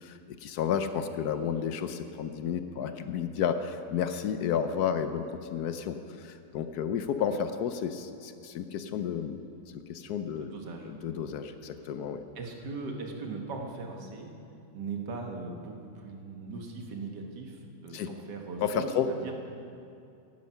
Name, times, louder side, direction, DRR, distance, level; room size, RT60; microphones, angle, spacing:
voice 1, 0.0-9.5 9.7-10.5 10.8-12.2 17.9-18.1 18.6-19.1, left 8 dB, 70° left, 9 dB, 1.1 m, -32 dB
voice 2, 10.4-10.9 12.4-14.3 14.7-19.3, right 3 dB, 75° right, 2 dB, 2.0 m, -39 dB
15.0 x 10.5 x 5.6 m, 2.6 s
omnidirectional pair, 1.9 m